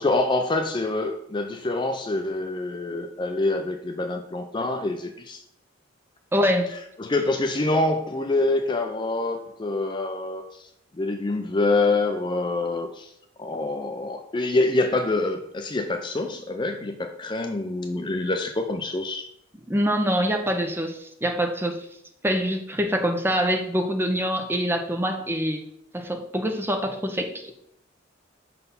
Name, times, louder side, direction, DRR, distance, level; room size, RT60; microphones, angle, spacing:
voice 1, 0.0-5.4 7.0-10.6 11.0-13.1 13.4-19.2, left 2 dB, 25° left, 6 dB, 0.4 m, -26 dB
voice 2, 6.3-6.7 19.7-21.9 22.2-25.6 25.9-27.3, equal, 10° right, 4 dB, 0.7 m, -25 dB
5.5 x 4.2 x 5.4 m, 0.73 s
head